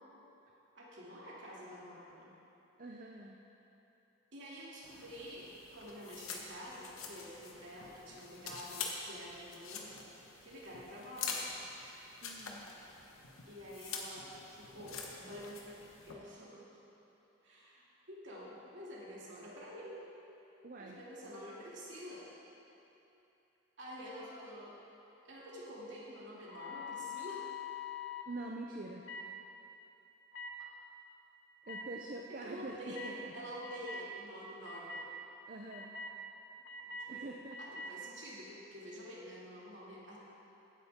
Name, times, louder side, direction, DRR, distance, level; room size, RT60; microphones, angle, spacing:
voice 1, 0.7-2.3 4.3-10.0 10.4-11.5 13.5-15.8 16.1-16.8 17.4-20.0 20.8-22.3 23.8-24.8 25.2-27.5 32.4-35.1 36.8-37.3 37.6-40.2, equal, 60° right, -6 dB, 2.6 m, -48 dB
voice 2, 2.8-3.4 12.2-12.7 20.6-21.0 28.3-29.0 31.7-33.5 35.5-36.0 37.1-37.6, right 2 dB, 40° right, 0 dB, 0.6 m, -45 dB
sound 1, 4.8-16.1, left 4 dB, 90° left, 1.3 m, -46 dB
sound 2, 26.4-28.3 29.0-29.3 30.3-30.5 31.6-31.8 32.9-33.1 33.6-34.1 34.6-35.1 35.7-36.1 36.6-37.1 37.5-37.9, left 5 dB, 65° left, 1.0 m, -44 dB
16.0 x 9.3 x 3.7 m, 3.0 s
head